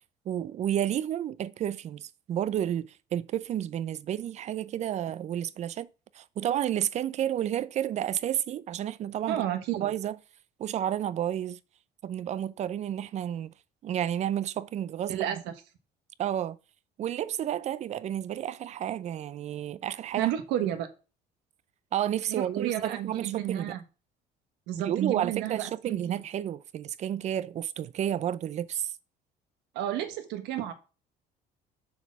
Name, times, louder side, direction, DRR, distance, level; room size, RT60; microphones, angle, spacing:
voice 1, 0.3-5.9 6.1-9.4 9.8-10.2 10.6-11.6 12.0-13.5 13.8-15.4 16.2-16.6 17.0-20.3 21.9-23.8 24.8-28.9, right 10 dB, 40° right, 0.5 m, -31 dB
voice 2, 9.3-9.9 15.1-15.4 20.2-20.9 22.3-23.8 24.7-26.2 29.7-30.7, right 11 dB, 85° right, 1.4 m, -31 dB
7.0 x 4.3 x 5.9 m
cardioid pair, 125°, 17 cm